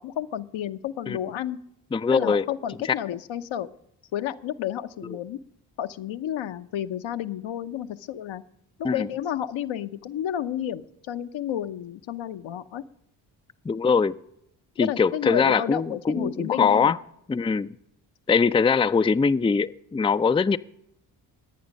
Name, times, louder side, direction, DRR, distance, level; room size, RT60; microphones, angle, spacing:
voice 1, 0.0-1.6 2.1-3.7 4.1-5.4 5.8-8.4 8.8-12.8 14.8-16.9, left 11 dB, 65° left, 0.9 m, -31 dB
voice 2, 1.9-2.5 8.8-9.1 13.6-14.2 14.8-17.0 17.3-17.7 18.3-20.6, left 5 dB, 10° left, 0.4 m, -22 dB
21.0 x 8.8 x 5.3 m
hypercardioid pair, 50°, 50 cm